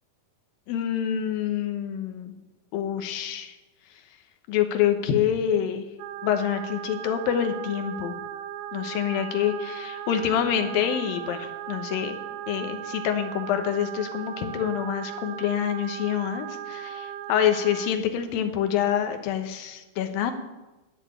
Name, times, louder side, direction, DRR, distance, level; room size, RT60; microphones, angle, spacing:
voice 1, 0.7-2.3 2.7-3.5 4.5-5.8 6.2-8.2 8.7-12.2 12.5-20.3, left 9 dB, 80° left, 7 dB, 2.7 m, -26 dB
sound 1, 6.0-17.9, right 11 dB, 75° right, 1.9 m, -37 dB
11.5 x 6.9 x 8.8 m, 1.1 s
omnidirectional pair, 4.2 m